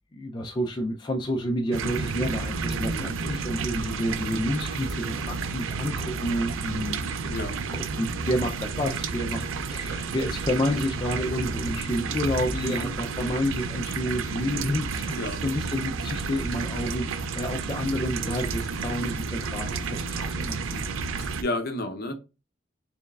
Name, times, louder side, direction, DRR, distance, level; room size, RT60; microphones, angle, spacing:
voice 1, 0.1-7.0 7.7-21.0, equal, 25° left, 0.4 m, -30 dB
sound 1, 1.7-21.4, right 4 dB, 85° right, 0.4 m, -31 dB
voice 2, 2.7-3.0 7.3-7.6 12.5-12.9 15.1-15.4 21.2-22.1, left 1 dB, 50° left, 0.7 m, -32 dB
4.4 x 3.1 x 2.3 m
head